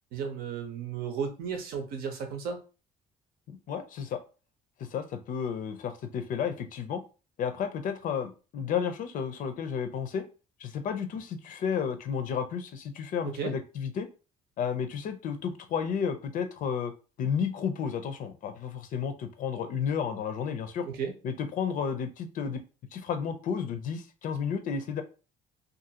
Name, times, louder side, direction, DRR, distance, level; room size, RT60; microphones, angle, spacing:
voice 1, 0.1-2.6 13.2-13.5 20.8-21.1, right 6 dB, 75° right, 5 dB, 0.8 m, -34 dB
voice 2, 3.5-4.2 4.8-7.0 7.4-10.2 10.6-14.1 14.6-16.9 17.2-20.9 21.2-22.6 22.9-25.0, left 7 dB, 55° left, 7 dB, 0.5 m, -32 dB
2.6 x 2.5 x 2.8 m, 0.33 s
cardioid pair, 120°, 16 cm